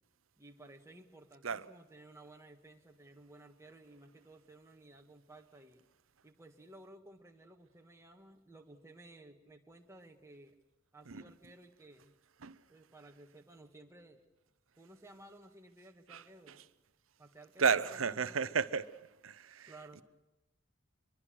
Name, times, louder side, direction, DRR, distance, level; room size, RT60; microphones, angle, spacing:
voice 1, 0.4-5.8 6.2-10.5 10.9-12.1 12.7-14.2 14.8-16.7 17.2-18.7 19.7-20.0, right 2 dB, 15° right, 1.8 m, -56 dB
voice 2, 17.6-18.9 19.2-19.7, right 6 dB, 75° right, 0.7 m, -32 dB
24.0 x 22.5 x 6.4 m
head